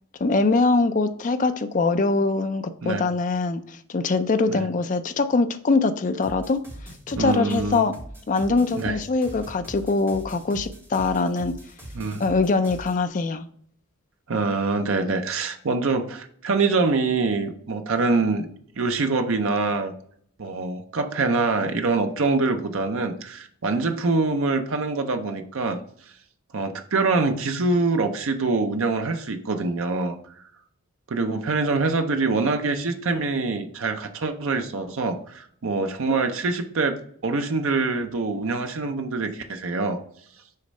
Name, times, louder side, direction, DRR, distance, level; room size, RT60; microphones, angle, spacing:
voice 1, 0.2-6.6 7.1-7.9 8.3-11.5 12.2-13.4, left 3 dB, 35° left, 9 dB, 0.4 m, -23 dB
sound 1, 6.2-13.0, right 1 dB, 10° right, 1.5 m, -41 dB
voice 2, 7.2-7.8 8.8-9.0 11.9-12.2 14.3-18.5 18.8-19.9 20.4-25.8 26.5-30.2 31.1-37.0 37.2-40.0, right 3 dB, 60° right, 7 dB, 0.6 m, -24 dB
6.5 x 3.1 x 5.3 m, 0.63 s
head